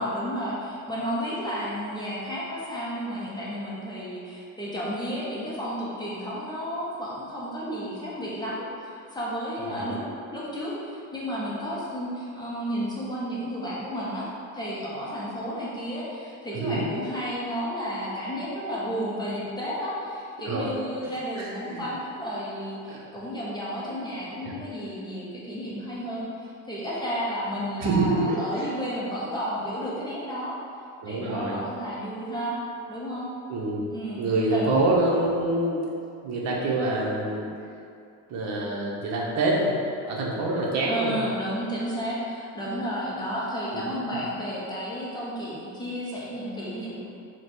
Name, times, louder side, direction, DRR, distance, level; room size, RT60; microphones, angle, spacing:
voice 1, 0.0-10.0 10.3-30.6 31.1-32.6 32.9-33.3 33.9-34.2 34.5-34.7 40.9-47.0, equal, 10° left, -7 dB, 0.6 m, -32 dB
voice 2, 9.6-9.9 16.5-16.8 20.4-20.6 21.0-21.9 22.9-23.0 24.4-24.6 27.8-28.7 31.0-31.6 33.5-33.9 34.2-35.8 36.2-37.4 38.3-39.8 40.1-41.2 43.7-44.2, right 2 dB, 50° right, -3 dB, 0.8 m, -26 dB
3.1 x 2.2 x 4.1 m, 2.5 s
cardioid pair, 125°, 35 cm